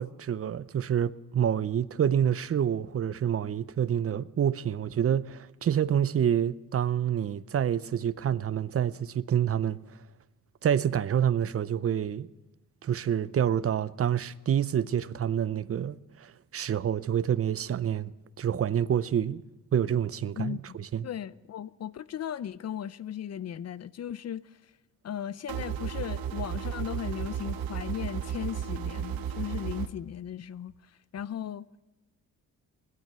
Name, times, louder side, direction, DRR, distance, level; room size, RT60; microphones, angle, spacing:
voice 1, 0.0-9.8 10.6-12.3 12.8-18.1 18.4-19.4 19.7-20.6 20.9-21.1, right 9 dB, 40° right, 0.6 m, -27 dB
voice 2, 20.4-20.8 21.0-24.6 25.0-30.7 31.1-31.6, left 9 dB, 45° left, 0.6 m, -37 dB
sound 1, 25.5-29.9, right 8 dB, 85° right, 1.0 m, -34 dB
17.0 x 12.0 x 6.7 m
cardioid pair, 85°, 35 cm